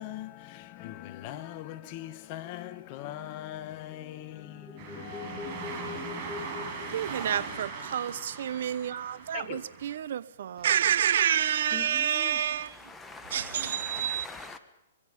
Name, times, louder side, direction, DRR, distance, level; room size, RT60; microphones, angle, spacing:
voice 1, 0.0-6.9 9.3-9.6, left 13 dB, 35° left, 1.5 m, -42 dB
sound 1, 4.2-7.9, left 4 dB, 10° right, 6.2 m, -43 dB
sound 2, 4.8-10.0, right 5 dB, 35° right, 5.9 m, -40 dB
voice 2, 6.9-12.8 13.3-14.3, right 9 dB, 65° right, 0.9 m, -29 dB
voice 3, 11.7-14.6, left 4 dB, 10° left, 1.6 m, -44 dB
24.5 x 22.0 x 5.5 m
hypercardioid pair, 145°, 0 cm